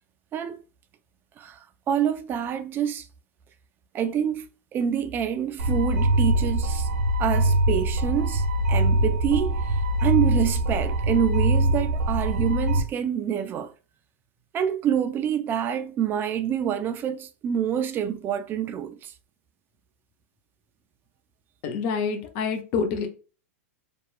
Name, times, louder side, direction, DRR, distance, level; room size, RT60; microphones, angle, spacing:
voice 1, 0.3-0.6 1.4-1.6 1.9-3.1 3.9-6.9 7.2-13.7 14.5-19.1, right 9 dB, 25° right, 0.3 m, -27 dB
sound 1, 5.6-12.8, right 1 dB, 85° right, 0.6 m, -23 dB
voice 2, 21.6-23.1, left 5 dB, 45° left, 0.6 m, -27 dB
2.8 x 2.2 x 2.4 m
hypercardioid pair, 120°, 8 cm